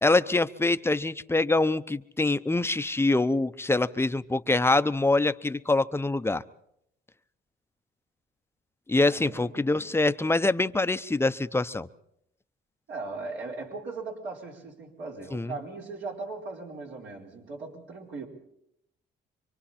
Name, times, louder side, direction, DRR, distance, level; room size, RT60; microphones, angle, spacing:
voice 1, 0.0-6.4 8.9-11.9 15.3-15.5, left 2 dB, 10° left, 12 dB, 0.7 m, -25 dB
voice 2, 9.0-9.6 12.9-18.3, right 3 dB, 70° right, -2 dB, 4.7 m, -38 dB
26.5 x 24.5 x 4.3 m, 0.75 s
cardioid pair, 90°, 20 cm